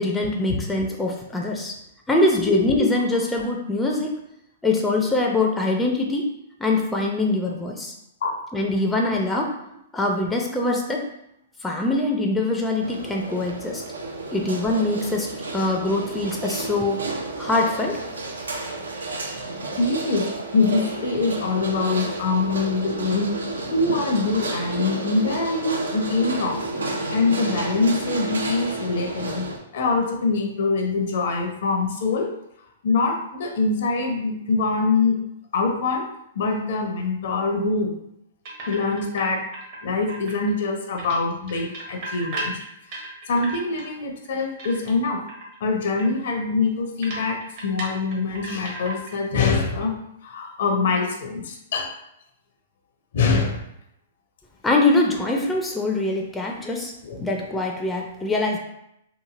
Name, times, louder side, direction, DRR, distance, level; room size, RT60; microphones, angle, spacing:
voice 1, 0.0-1.7 2.1-4.1 4.6-6.3 6.6-7.9 8.5-9.6 9.9-11.0 11.6-13.8 14.3-17.1 17.4-18.0 54.6-56.9 57.2-58.6, left 2 dB, 10° left, 0 dB, 0.4 m, -23 dB
sound 1, 12.8-29.6, right 2 dB, 80° right, 0.4 m, -31 dB
voice 2, 19.8-23.3 23.7-26.6 27.1-32.3 32.8-35.2 35.5-36.1 36.3-38.0 38.7-39.4 39.8-42.6 42.9-43.0 43.3-45.2 45.6-51.9 53.1-53.6 57.0-57.3, left 4 dB, 60° left, 3 dB, 0.5 m, -24 dB
sound 2, 38.4-39.2 39.5-40.6 41.0-43.9 44.2-45.0 45.3-45.6 46.0-46.1 46.3-46.4 47.0-49.3 49.5-49.8, right 2 dB, 50° right, 0.9 m, -35 dB
2.9 x 2.6 x 2.4 m, 0.79 s
figure-of-eight pair, 115°, 0 cm